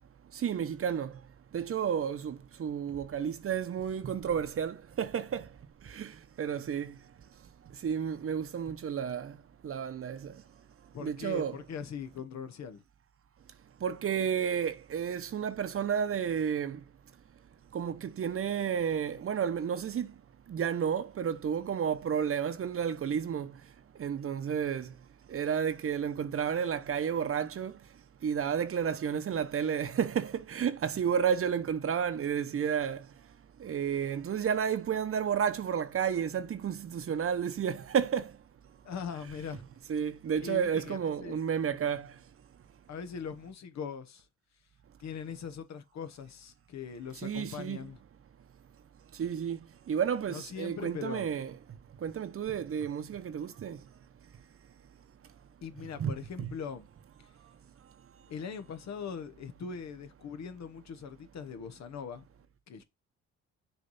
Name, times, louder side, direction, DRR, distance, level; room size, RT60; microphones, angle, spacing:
voice 1, 0.4-1.1 1.5-5.4 5.9-6.1 6.4-6.9 7.8-9.3 9.6-10.3 11.0-11.6 13.8-16.8 17.7-20.1 20.5-23.5 24.0-24.9 25.3-27.7 28.2-33.0 33.6-38.3 39.9-42.1 47.2-47.9 49.2-49.6 49.9-51.5 52.0-53.8 56.0-56.5, right 8 dB, 45° right, 0.9 m, -31 dB
voice 2, 10.9-12.8 38.8-39.6 40.4-41.4 42.9-44.2 45.0-48.0 50.3-51.3 55.6-56.9 58.3-62.2 62.7-62.8, left 6 dB, 60° left, 1.2 m, -41 dB
6.8 x 3.3 x 5.5 m
cardioid pair, 90°, 30 cm